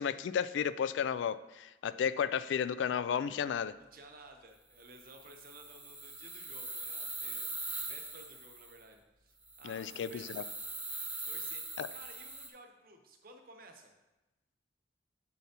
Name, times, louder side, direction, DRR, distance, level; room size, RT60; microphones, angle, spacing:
voice 1, 0.0-3.7 9.6-10.4 11.8-11.9, left 7 dB, 85° left, 15 dB, 0.3 m, -33 dB
voice 2, 3.8-10.4 11.2-13.9, right 2 dB, 50° right, 4 dB, 0.8 m, -55 dB
sound 1, 4.8-8.8 9.5-12.5, right 2 dB, 5° right, 0.5 m, -42 dB
7.2 x 7.0 x 2.9 m, 1.0 s
head